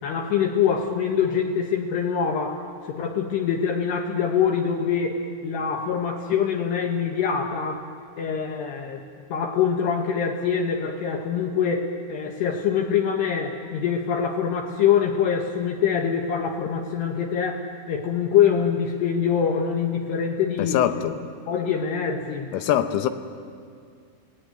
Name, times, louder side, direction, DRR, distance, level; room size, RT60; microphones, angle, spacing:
voice 1, 0.0-7.8 8.2-9.0 9.3-20.8 21.5-22.5, left 7 dB, 70° left, 1 dB, 3.1 m, -24 dB
voice 2, 20.6-21.2 22.5-23.1, left 11 dB, 90° left, 8 dB, 3.7 m, -23 dB
29.5 x 18.5 x 9.2 m, 2.2 s
omnidirectional pair, 5.7 m